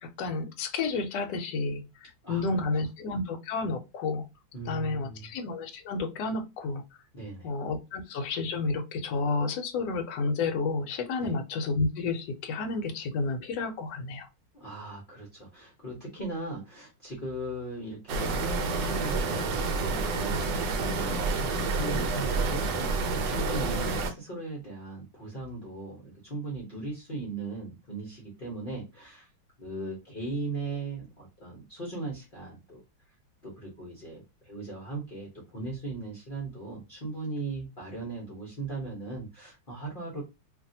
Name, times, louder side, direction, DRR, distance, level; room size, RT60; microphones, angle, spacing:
voice 1, 0.0-4.2 4.7-6.8 7.4-14.3, left 3 dB, 70° left, 1.1 m, -31 dB
voice 2, 4.5-5.3 7.1-7.5 11.2-11.3 14.5-29.3 29.6-32.8 33.4-40.2, right 2 dB, 40° left, 0.8 m, -38 dB
sound 1, 18.1-24.1, right 3 dB, 80° right, 1.3 m, -29 dB
2.8 x 2.6 x 2.6 m
omnidirectional pair, 2.0 m